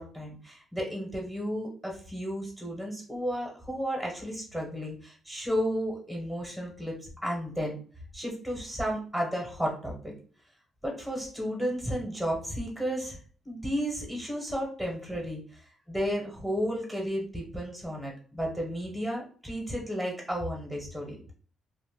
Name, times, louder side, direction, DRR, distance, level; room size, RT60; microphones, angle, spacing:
voice 1, 0.0-7.8 8.1-10.1 10.8-13.2 13.4-15.6 15.9-21.3, equal, ahead, -1 dB, 0.9 m, -33 dB
2.5 x 2.1 x 3.4 m, 0.42 s
cardioid pair, 90°, 0 cm